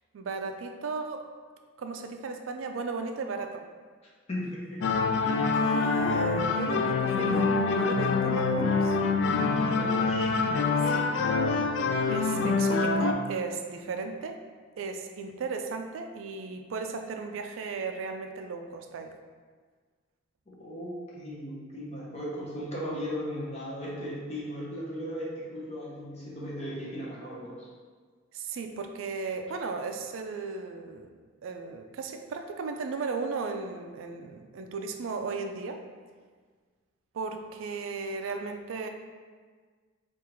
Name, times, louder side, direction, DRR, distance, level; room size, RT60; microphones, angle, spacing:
voice 1, 0.1-1.3 1.8-3.6 5.5-9.0 10.9-11.0 12.1-14.4 14.8-19.1 28.3-31.1 31.4-35.8 37.1-38.9, right 4 dB, 85° right, 5 dB, 0.4 m, -35 dB
voice 2, 4.3-4.9 9.6-11.0 20.5-27.7, equal, 35° left, -5 dB, 0.9 m, -37 dB
sound 1, 4.8-13.1, left 4 dB, 65° left, 0.3 m, -25 dB
3.6 x 2.5 x 4.4 m, 1.5 s
head